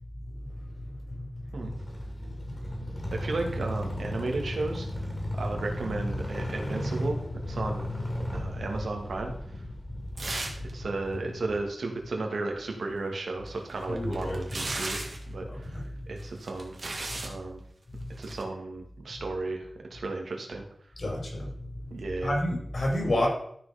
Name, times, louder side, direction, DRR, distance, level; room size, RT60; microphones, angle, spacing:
sound 1, 1.6-11.6, left 1 dB, 20° left, 2.4 m, -35 dB
voice 1, 3.1-4.9 5.4-7.2 7.4-7.9 8.3-9.6 10.6-15.0 15.3-16.8 17.2-17.6 18.2-20.6 21.9-22.4, right 3 dB, 80° right, 2 dB, 1.9 m, -34 dB
sound 2, 10.2-10.7 11.0-11.1 13.5-15.3 16.2-17.4 18.2-18.4, right 2 dB, 45° right, 1.5 m, -36 dB
voice 2, 13.9-14.4 15.5-15.8 21.0-21.4 22.2-23.3, left 1 dB, 60° left, -2 dB, 4.3 m, -29 dB
13.0 x 4.5 x 5.0 m, 0.65 s
wide cardioid pair, 115°, 0 cm